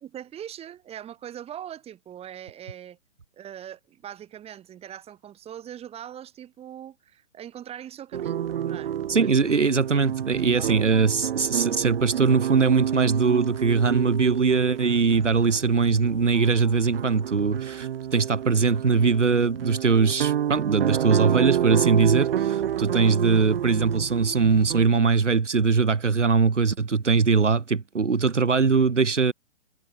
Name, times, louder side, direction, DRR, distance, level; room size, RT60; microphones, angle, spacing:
voice 1, 0.0-3.0 3.3-9.4 10.3-10.8, right 10 dB, 15° right, 4.1 m, -41 dB
sound 1, 8.1-24.9, right 10 dB, 55° right, 1.7 m, -29 dB
voice 2, 9.1-29.3, right 5 dB, 90° right, 1.1 m, -21 dB
figure-of-eight pair, 125°, 35 cm